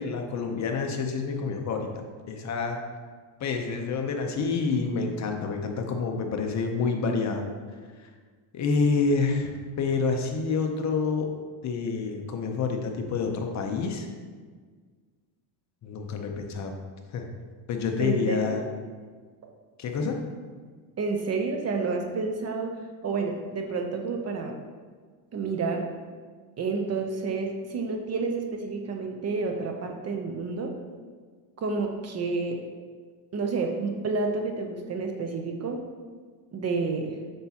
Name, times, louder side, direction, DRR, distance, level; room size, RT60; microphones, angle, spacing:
voice 1, 0.0-1.9 2.3-2.8 3.4-7.5 8.0-8.1 8.5-11.3 11.6-14.1 15.8-16.7 17.1-17.2 17.7-18.6 19.8-20.2, left 4 dB, 35° left, 3 dB, 0.7 m, -28 dB
voice 2, 18.0-18.7 21.0-22.7 23.0-24.5 25.3-25.9 26.6-30.7 31.6-32.6 33.3-35.8 36.5-37.2, right 4 dB, 30° right, 3 dB, 0.6 m, -29 dB
7.8 x 5.9 x 2.9 m, 1.5 s
cardioid pair, 140°, 49 cm